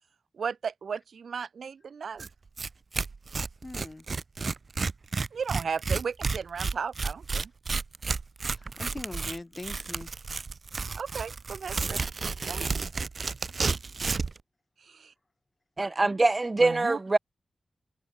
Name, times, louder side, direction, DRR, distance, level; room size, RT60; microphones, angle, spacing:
voice 1, 0.4-2.3 5.3-7.5 10.9-12.0 12.2-12.6 14.9-15.1 16.6-17.0, right 6 dB, 75° right, 2.8 m, -35 dB
Tearing, 2.2-2.3 2.6-2.7 2.9-14.4, right 4 dB, 45° right, 5.4 m, -31 dB
voice 2, 3.6-4.0 8.4-10.1, left 2 dB, 20° left, 6.9 m, -41 dB
voice 3, 15.8-17.2, right 2 dB, 25° right, 1.7 m, -24 dB
wide cardioid pair, 135°, 0 cm